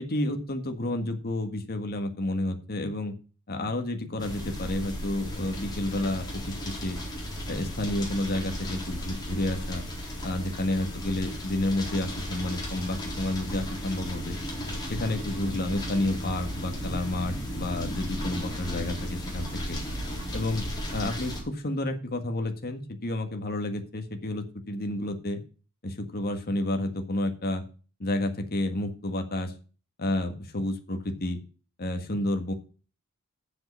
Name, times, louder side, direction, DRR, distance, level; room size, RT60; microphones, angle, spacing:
voice 1, 0.0-3.1 3.5-7.0 7.5-9.8 10.2-14.4 14.9-19.8 20.3-20.6 20.9-25.4 25.8-27.6 28.0-29.5 30.0-31.4 31.8-32.5, left 1 dB, 45° left, 6 dB, 1.7 m, -30 dB
sound 1, 4.2-21.4, equal, 20° left, 4.0 m, -35 dB
7.7 x 7.6 x 7.1 m, 0.37 s
head